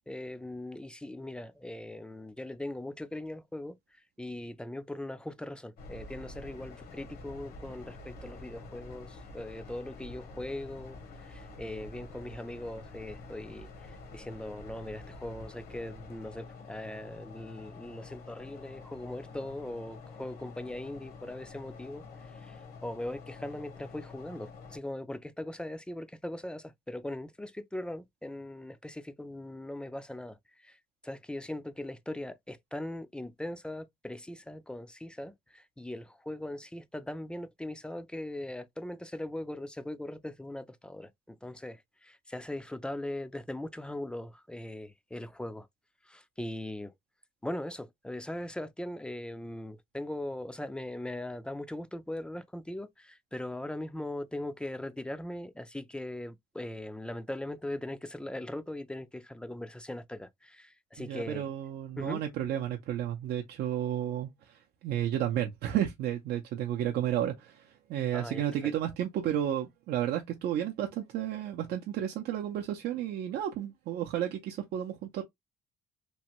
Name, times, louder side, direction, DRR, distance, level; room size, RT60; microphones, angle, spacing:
voice 1, 0.1-3.8 4.2-11.0 11.2-22.1 22.4-22.6 22.8-30.4 30.6-30.8 31.0-45.7 46.1-46.9 47.4-61.5 62.0-62.2 68.1-68.7, left 1 dB, 5° left, 0.3 m, -40 dB
sound 1, 5.8-24.8, left 3 dB, 65° left, 0.9 m, -47 dB
voice 2, 61.0-75.2, right 11 dB, 70° right, 0.5 m, -32 dB
3.0 x 2.2 x 2.9 m
cardioid pair, 110°, 17 cm